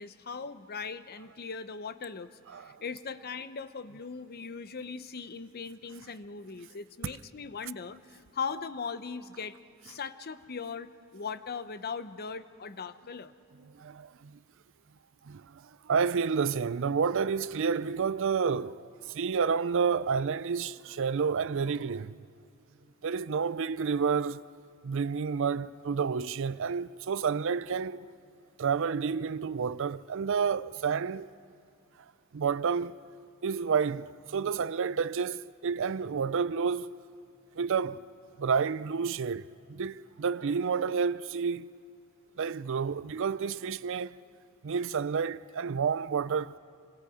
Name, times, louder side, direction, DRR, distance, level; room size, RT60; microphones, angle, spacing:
voice 1, 0.0-9.6 9.8-13.3, left 5 dB, 45° left, 0.8 m, -39 dB
voice 2, 13.8-14.3 15.3-15.5 15.9-22.1 23.0-24.4 24.8-28.0 28.6-31.3 32.3-33.1 33.4-37.0 37.6-38.0 38.4-39.4 39.7-41.7 42.4-44.2 44.6-46.6, right 6 dB, 60° right, 0.5 m, -30 dB
28.0 x 25.5 x 5.0 m
head